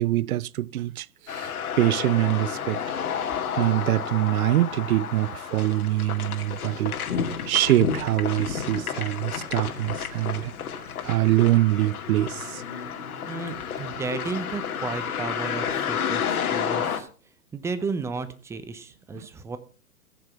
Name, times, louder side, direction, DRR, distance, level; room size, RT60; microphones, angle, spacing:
voice 1, 0.0-1.5 1.8-2.8 3.5-7.0 7.5-10.5 11.0-12.6 19.1-19.3, right 15 dB, 65° right, 0.6 m, -24 dB
sound 1, 1.3-17.0, left 7 dB, 65° left, 2.3 m, -31 dB
voice 2, 13.2-17.1 17.5-19.6, right 4 dB, 5° right, 0.6 m, -33 dB
15.5 x 7.1 x 5.8 m
hypercardioid pair, 125°, 46 cm